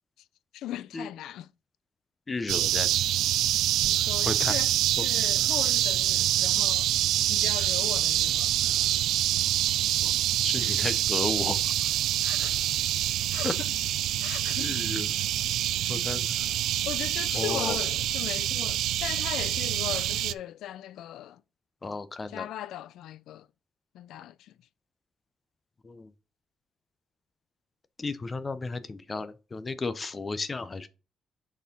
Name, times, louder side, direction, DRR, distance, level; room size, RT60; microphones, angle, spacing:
voice 1, 0.5-1.5 3.8-6.9 7.3-8.5 10.6-10.8 12.2-12.6 13.3-13.7 14.2-15.0 15.8-15.9 16.8-21.4 22.3-23.5 23.9-24.6, left 12 dB, 85° left, 0.3 m, -38 dB
voice 2, 2.3-2.9 4.3-4.6 10.0-10.1 10.4-11.9 13.4-13.5 14.6-15.1 15.9-16.4 17.3-17.8 21.8-22.5 25.8-26.1 28.0-30.9, left 3 dB, 20° left, 0.5 m, -33 dB
sound 1, 2.5-20.3, right 12 dB, 85° right, 0.3 m, -26 dB
5.9 x 4.3 x 5.2 m
cardioid pair, 170°, 0 cm